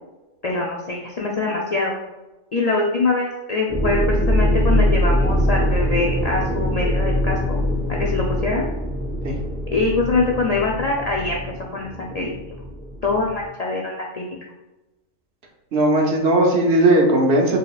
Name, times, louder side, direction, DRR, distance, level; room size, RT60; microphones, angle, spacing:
voice 1, 0.4-2.0 2.5-7.6 7.9-8.7 9.7-11.4 11.7-12.4 13.0-14.3, left 3 dB, 80° left, -2 dB, 0.3 m, -23 dB
sound 1, 3.7-13.5, left 1 dB, 5° left, 0.6 m, -23 dB
voice 2, 15.7-17.6, right 1 dB, 55° right, 0 dB, 0.9 m, -17 dB
4.7 x 2.9 x 2.3 m, 1.0 s
omnidirectional pair, 1.4 m